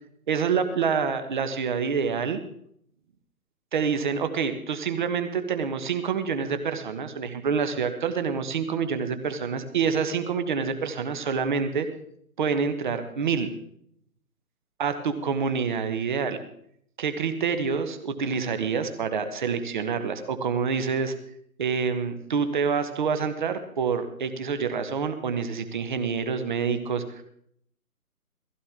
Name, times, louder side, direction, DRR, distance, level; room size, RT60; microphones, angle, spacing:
voice 1, 0.3-2.4 3.7-11.9 12.4-13.5 14.8-16.4 17.0-21.1 21.6-27.2, right 6 dB, 30° right, 9 dB, 1.3 m, -27 dB
17.0 x 15.5 x 3.7 m, 0.68 s
figure-of-eight pair, 140°, 45 cm